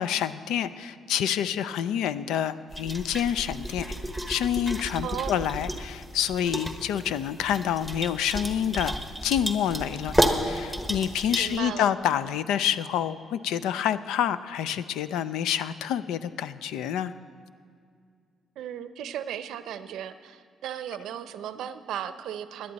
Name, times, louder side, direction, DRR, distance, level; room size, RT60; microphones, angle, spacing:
voice 1, 0.0-4.0 4.3-8.9 9.2-10.1 10.4-17.1, left 9 dB, 90° left, 14 dB, 0.4 m, -28 dB
sound 1, 2.7-11.6, equal, 5° left, 1.2 m, -31 dB
voice 2, 5.0-5.5 11.4-11.9 18.6-22.7, right 10 dB, 80° right, 12 dB, 0.6 m, -36 dB
17.0 x 11.0 x 4.1 m, 2.2 s
cardioid pair, 90°, 0 cm